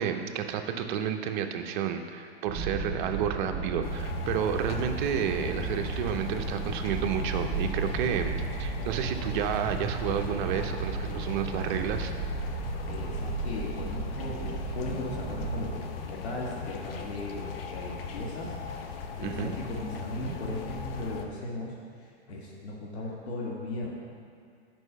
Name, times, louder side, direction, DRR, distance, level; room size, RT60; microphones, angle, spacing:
voice 1, 0.0-12.1 19.2-19.5, right 8 dB, 50° right, 6 dB, 0.7 m, -31 dB
sound 1, 2.5-15.8, right 3 dB, 25° right, 1.8 m, -34 dB
sound 2, 3.8-21.3, left 6 dB, 60° left, 0.8 m, -39 dB
voice 2, 12.9-23.9, left 1 dB, 80° left, -3 dB, 1.6 m, -37 dB
6.2 x 5.4 x 5.4 m, 2.2 s
hypercardioid pair, 120°, 32 cm